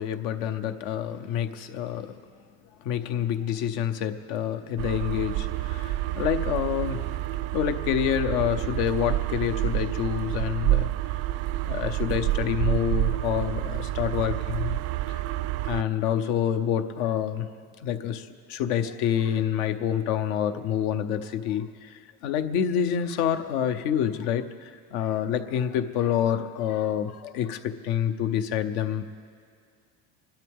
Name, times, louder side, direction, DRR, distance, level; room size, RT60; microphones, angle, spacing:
voice 1, 0.0-2.1 2.8-7.0 7.5-10.9 11.6-14.8 15.1-15.2 15.6-17.5 17.8-29.1, left 9 dB, 75° left, 9 dB, 1.0 m, -27 dB
sound 1, 4.8-15.8, right 16 dB, 55° right, 0.4 m, -28 dB
26.0 x 12.0 x 3.6 m, 2.1 s
supercardioid pair, 105°, 31 cm